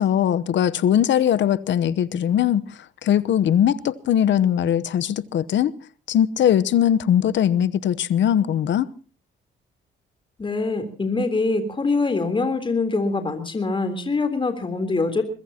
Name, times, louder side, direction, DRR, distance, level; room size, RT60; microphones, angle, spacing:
voice 1, 0.0-2.6 3.0-5.7 6.1-8.9, left 10 dB, 65° left, 0.9 m, -20 dB
voice 2, 10.4-15.2, left 3 dB, 25° left, 3.5 m, -24 dB
23.0 x 21.5 x 2.9 m
cardioid pair, 90°, 20 cm